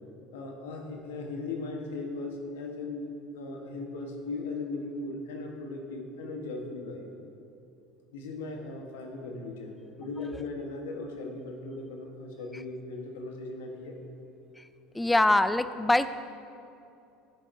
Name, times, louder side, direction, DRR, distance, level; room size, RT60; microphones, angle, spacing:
voice 1, 0.3-3.1 3.3-7.1 8.1-14.0, left 3 dB, 85° left, 2 dB, 1.1 m, -38 dB
voice 2, 14.9-16.2, left 2 dB, 10° left, 13 dB, 0.4 m, -23 dB
15.0 x 6.4 x 2.6 m, 2.7 s
hypercardioid pair, 90°, 0 cm